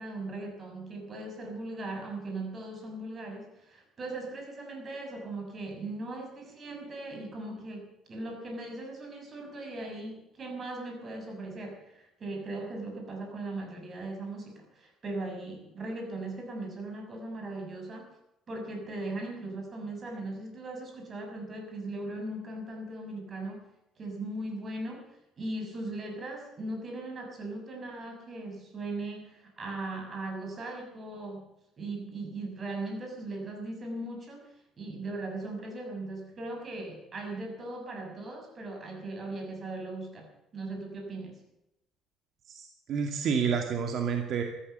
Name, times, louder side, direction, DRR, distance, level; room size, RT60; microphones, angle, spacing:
voice 1, 0.0-18.1 18.5-23.7 24.0-25.0 25.4-41.4, right 2 dB, 35° right, 3 dB, 6.5 m, -39 dB
voice 2, 42.5-44.4, right 6 dB, 55° right, 4 dB, 2.4 m, -29 dB
14.5 x 14.0 x 6.9 m, 0.89 s
cardioid pair, 115°, 0 cm